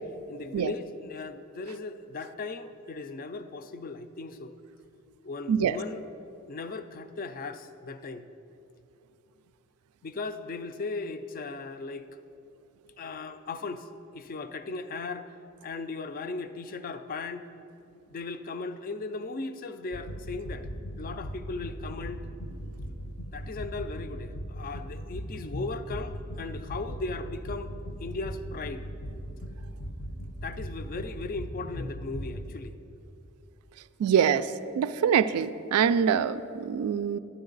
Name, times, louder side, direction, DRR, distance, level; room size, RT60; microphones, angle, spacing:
voice 1, 0.3-4.5 5.2-6.0 6.4-8.3 10.0-12.1 13.0-13.9 14.1-15.3 15.6-17.5 18.1-20.7 21.0-22.3 23.3-27.7 28.0-28.8 30.4-32.8, left 3 dB, 40° left, 10 dB, 0.4 m, -37 dB
sound 1, 19.9-32.5, equal, 65° left, 0.7 m, -38 dB
voice 2, 34.0-37.2, right 7 dB, 85° right, 14 dB, 0.3 m, -25 dB
11.5 x 9.8 x 3.9 m, 2.7 s
head